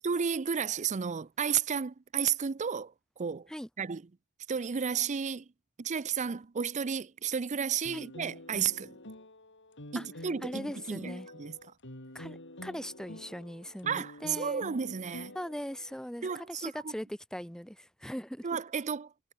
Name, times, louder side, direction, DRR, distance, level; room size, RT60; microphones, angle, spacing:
voice 1, 0.0-3.5 3.8-4.0 4.5-5.5 5.8-9.0 9.9-10.6 10.9-11.6 13.9-15.4 16.2-16.9 18.4-19.1, right 7 dB, 35° right, 0.5 m, -32 dB
sound 1, 7.8-15.9, left 1 dB, 55° left, 8.0 m, -47 dB
voice 2, 10.4-11.3 12.1-14.6 15.3-18.5, equal, 5° left, 2.4 m, -40 dB
head